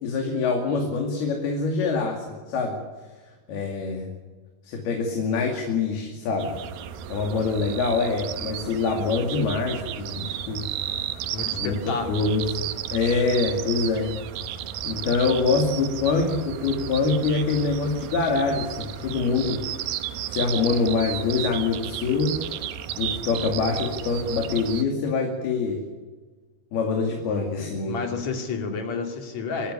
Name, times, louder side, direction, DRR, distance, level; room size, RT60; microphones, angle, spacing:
voice 1, 0.0-2.8 3.5-4.1 4.6-6.6 7.1-10.7 11.5-11.7 12.1-12.5 12.9-14.2 14.8-19.6 20.3-22.4 23.0-25.8 26.7-28.0, left 4 dB, 80° left, 2 dB, 4.5 m, -25 dB
sound 1, 6.4-24.8, right 10 dB, 75° right, 2.8 m, -33 dB
voice 2, 11.3-12.3 27.9-29.7, left 4 dB, 50° left, 4 dB, 3.6 m, -30 dB
25.5 x 15.0 x 9.8 m, 1.3 s
omnidirectional pair, 4.4 m